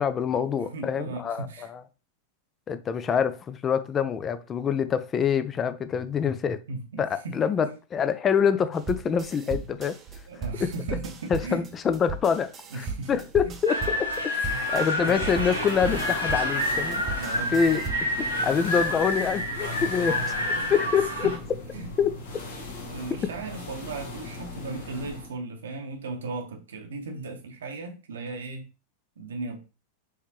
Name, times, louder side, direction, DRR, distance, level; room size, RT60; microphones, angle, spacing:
voice 1, 0.0-1.8 2.7-6.6 7.0-10.0 10.6-10.7 11.3-14.3 14.7-17.0 17.5-17.8 18.4-20.2 20.7-21.3 22.0-22.1, left 7 dB, 25° left, 0.4 m, -25 dB
voice 2, 0.7-1.7 6.7-7.4 10.3-11.7 12.7-13.6 14.5-15.3 17.2-17.8 19.7-20.3 20.5-20.8 21.2-21.4 21.7-21.9 22.8-28.7 29.2-29.6, right 3 dB, 65° right, 0.8 m, -37 dB
sound 1, 8.7-18.2, right 4 dB, 25° right, 0.7 m, -37 dB
sound 2, 13.7-21.4, left 1 dB, 85° left, 1.3 m, -29 dB
sound 3, 15.0-25.3, left 3 dB, 55° left, 1.1 m, -39 dB
4.8 x 3.2 x 2.9 m
figure-of-eight pair, 90°, 0 cm